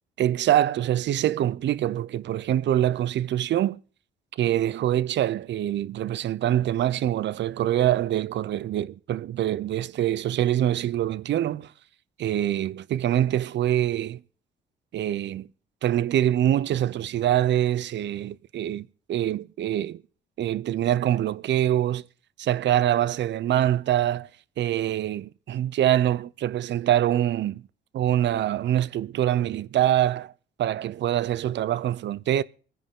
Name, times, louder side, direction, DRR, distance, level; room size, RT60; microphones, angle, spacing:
voice 1, 0.2-3.8 4.4-11.7 12.2-14.2 14.9-15.5 15.8-20.0 20.4-22.1 22.4-24.3 24.6-27.6 27.9-30.3 30.6-32.4, right 12 dB, 65° right, 0.7 m, -24 dB
25.0 x 10.5 x 3.7 m
cardioid pair, 90°, 20 cm